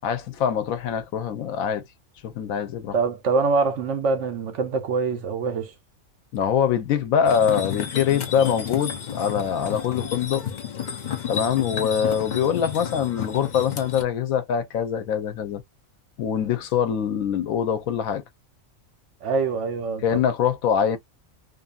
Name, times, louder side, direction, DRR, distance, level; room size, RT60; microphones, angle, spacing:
voice 1, 0.0-1.8 2.2-3.0 6.3-10.4 11.3-15.6 16.2-18.2 20.0-21.0, left 8 dB, 90° left, 1.1 m, -24 dB
voice 2, 2.9-5.7 19.2-20.2, right 4 dB, 65° right, 0.9 m, -24 dB
sound 1, 7.2-14.0, left 8 dB, 50° left, 0.5 m, -31 dB
2.6 x 2.6 x 2.3 m
omnidirectional pair, 1.4 m